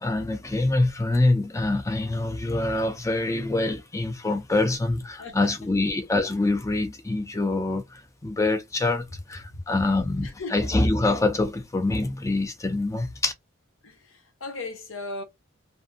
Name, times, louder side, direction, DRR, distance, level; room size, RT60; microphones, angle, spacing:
voice 1, 0.0-13.3, left 2 dB, 15° left, 0.4 m, -25 dB
voice 2, 5.2-5.5 9.5-9.6 10.2-10.7 13.8-15.2, left 3 dB, 65° left, 0.8 m, -37 dB
2.6 x 2.5 x 2.5 m
head